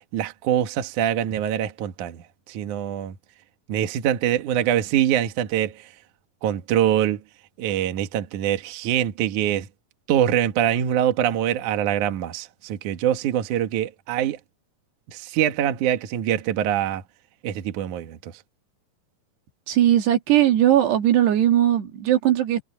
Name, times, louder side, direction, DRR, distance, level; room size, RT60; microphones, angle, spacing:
voice 1, 0.1-2.2 2.5-3.1 3.7-5.7 6.4-7.2 7.6-9.7 10.1-14.4 15.1-17.0 17.4-18.3, right 10 dB, 60° right, 2.5 m, -24 dB
voice 2, 19.7-22.6, right 12 dB, 85° right, 4.4 m, -19 dB
omnidirectional pair, 4.7 m